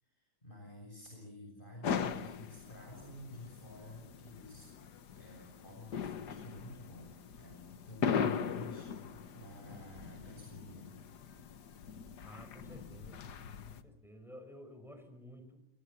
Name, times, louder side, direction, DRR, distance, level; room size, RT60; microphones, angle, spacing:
voice 1, 0.0-4.7 5.2-10.9, left 2 dB, 30° left, -1 dB, 7.3 m, -50 dB
sound 1, 1.8-13.8, left 6 dB, 80° left, 1.8 m, -40 dB
voice 2, 12.2-13.2 13.7-15.6, equal, ahead, 7 dB, 5.2 m, -52 dB
27.0 x 23.0 x 7.0 m, 0.75 s
omnidirectional pair, 1.8 m